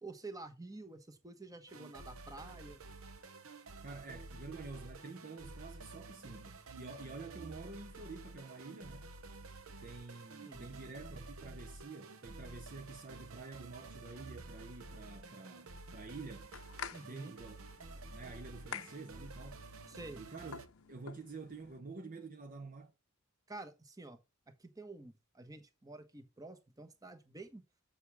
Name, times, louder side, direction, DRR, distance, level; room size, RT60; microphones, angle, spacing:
voice 1, 0.0-2.8 10.4-10.8 16.9-17.3 19.9-20.2 23.5-24.2 24.5-27.6, right 2 dB, 15° right, 1.1 m, -49 dB
sound 1, 1.7-20.7, right 3 dB, 75° right, 0.9 m, -51 dB
voice 2, 3.8-9.1 9.8-16.5 17.0-17.6 17.9-19.6 20.2-20.6 20.9-22.9, right 3 dB, 40° right, 0.7 m, -48 dB
sound 2, 16.2-21.8, left 7 dB, 70° left, 0.6 m, -50 dB
7.1 x 6.8 x 4.8 m
head